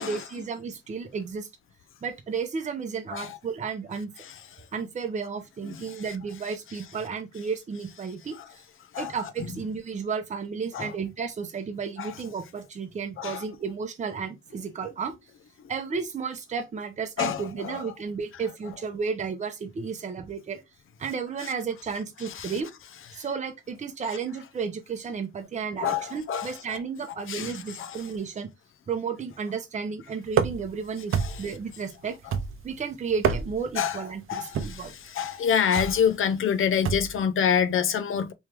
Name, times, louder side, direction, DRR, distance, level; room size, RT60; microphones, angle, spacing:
voice 1, 0.0-1.5 2.0-4.1 4.7-8.4 9.0-15.1 15.7-20.6 21.0-22.7 23.1-28.5 28.9-32.2 32.6-34.9, right 5 dB, 35° right, 0.6 m, -33 dB
voice 2, 17.2-17.8 22.4-22.5 25.8-26.5 27.3-27.5 33.8-33.9 34.3-34.4 35.2-38.3, left 8 dB, 75° left, 0.5 m, -25 dB
sound 1, 30.3-30.8 31.1-31.6 32.3-32.8 33.1-33.7 34.5-34.9 35.7-36.0 36.8-37.2, right 7 dB, 80° right, 0.5 m, -27 dB
3.1 x 3.1 x 3.3 m
wide cardioid pair, 180°, 21 cm